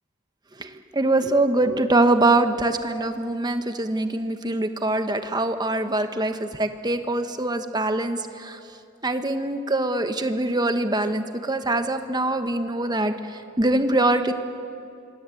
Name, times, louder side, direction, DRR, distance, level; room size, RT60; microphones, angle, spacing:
voice 1, 0.6-8.6 9.0-13.1 13.6-14.3, right 2 dB, 20° right, 8 dB, 1.2 m, -23 dB
25.5 x 25.0 x 8.5 m, 2.6 s
head